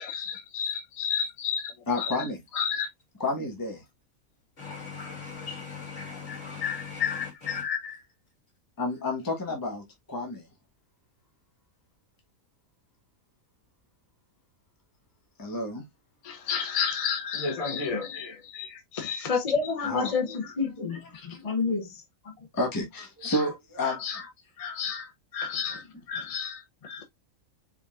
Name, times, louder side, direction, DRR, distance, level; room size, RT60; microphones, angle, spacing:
voice 1, 0.0-2.3 2.5-2.9 6.3-8.0 16.2-22.0 23.2-23.5 23.8-24.2 24.6-27.0, left 6 dB, 40° left, 0.6 m, -31 dB
voice 2, 1.9-2.4 3.2-3.8 8.8-10.5 15.4-15.8 19.8-20.1 21.1-21.4 22.5-24.0, left 2 dB, 15° left, 1.0 m, -30 dB
voice 3, 4.6-7.7, left 5 dB, 55° left, 2.6 m, -40 dB
4.8 x 3.7 x 2.3 m
omnidirectional pair, 1.5 m